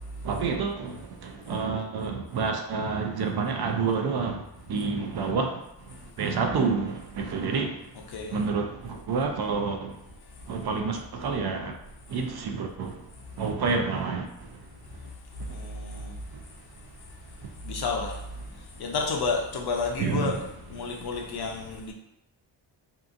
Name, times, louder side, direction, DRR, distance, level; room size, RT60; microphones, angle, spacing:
voice 1, 0.2-4.4 4.7-5.6 6.2-7.8 8.3-9.9 10.5-11.7 12.1-13.0 13.4-14.3 20.0-20.4, right 5 dB, 60° right, 3 dB, 0.5 m, -28 dB
voice 2, 8.1-8.4 15.5-16.2 17.6-18.2 18.8-20.4 20.7-21.9, left 4 dB, 60° left, 1 dB, 0.6 m, -30 dB
2.7 x 2.4 x 2.5 m, 0.86 s
cardioid pair, 85°, 45 cm